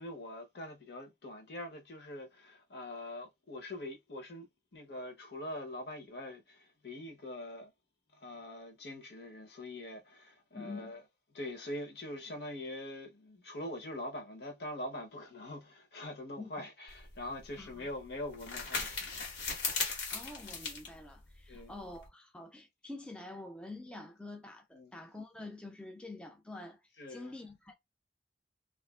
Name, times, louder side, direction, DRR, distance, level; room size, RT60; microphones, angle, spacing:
voice 1, 0.0-7.7 8.1-11.0 11.3-19.3 21.5-21.7 24.7-24.9 27.0-27.3, left 1 dB, 65° left, 0.8 m, -43 dB
voice 2, 10.5-10.9 16.4-16.5 17.6-17.9 20.1-27.7, left 2 dB, 5° left, 0.3 m, -47 dB
sound 1, 16.9-22.1, left 4 dB, 90° left, 1.2 m, -39 dB
2.6 x 2.4 x 2.2 m
head